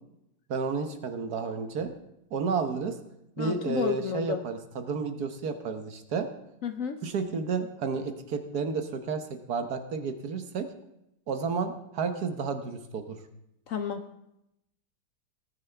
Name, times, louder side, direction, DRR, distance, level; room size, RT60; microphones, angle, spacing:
voice 1, 0.5-1.9 2.3-3.0 3.4-6.3 7.0-10.7 11.3-13.2, right 5 dB, 65° right, 7 dB, 1.5 m, -31 dB
voice 2, 3.4-4.4 6.6-7.0 13.7-14.0, left 7 dB, 60° left, 8 dB, 1.0 m, -31 dB
18.5 x 9.9 x 3.4 m, 0.83 s
omnidirectional pair, 1.9 m